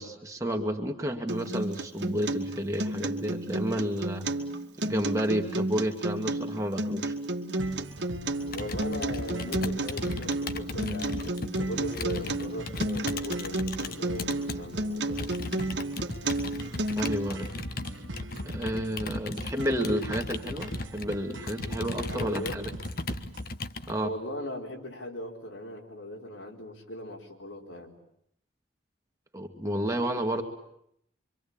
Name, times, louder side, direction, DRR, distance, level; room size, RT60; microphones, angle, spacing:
voice 1, 0.0-4.2 4.8-7.1 17.0-17.5 18.4-22.7 23.9-24.1 29.3-30.4, equal, 15° right, 3 dB, 2.1 m, -31 dB
Acoustic guitar, 1.3-17.3, right 2 dB, 65° right, 2.0 m, -32 dB
sound 1, 7.6-23.6, right 1 dB, 85° right, 1.4 m, -42 dB
voice 2, 8.5-15.7 22.0-22.6 24.0-28.0, equal, 85° left, 1 dB, 4.5 m, -39 dB
Computer keyboard, 8.5-14.6 15.2-23.9, left 2 dB, 50° left, 1.2 m, -37 dB
26.0 x 25.5 x 8.8 m, 0.75 s
head